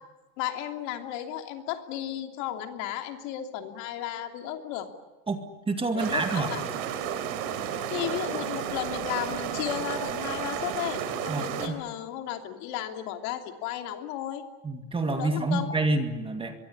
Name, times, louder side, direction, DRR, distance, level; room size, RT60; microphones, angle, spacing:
voice 1, 0.4-4.9 5.9-6.7 7.9-14.4 15.1-15.7, left 11 dB, 55° left, 5 dB, 3.1 m, -34 dB
voice 2, 5.3-6.5 11.3-11.8 14.6-16.6, right 2 dB, 10° right, 6 dB, 2.0 m, -28 dB
sound 1, 6.0-11.7, right 9 dB, 65° right, 4.2 m, -32 dB
24.0 x 23.0 x 9.8 m, 1.1 s
supercardioid pair, 145°, 44 cm